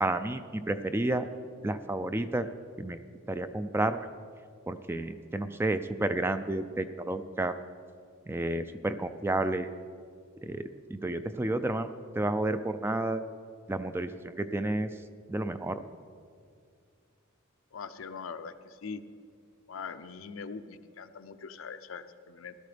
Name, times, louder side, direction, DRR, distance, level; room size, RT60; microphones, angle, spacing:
voice 1, 0.0-1.3 1.6-2.5 2.8-3.0 3.3-4.1 4.7-7.5 8.3-9.7 10.4-11.9 12.2-13.2 13.7-14.9 15.3-15.8, right 2 dB, 10° right, 10 dB, 0.3 m, -31 dB
voice 2, 17.7-19.0 19.7-22.5, left 5 dB, 70° left, 10 dB, 0.6 m, -42 dB
16.5 x 12.5 x 3.3 m, 2.2 s
head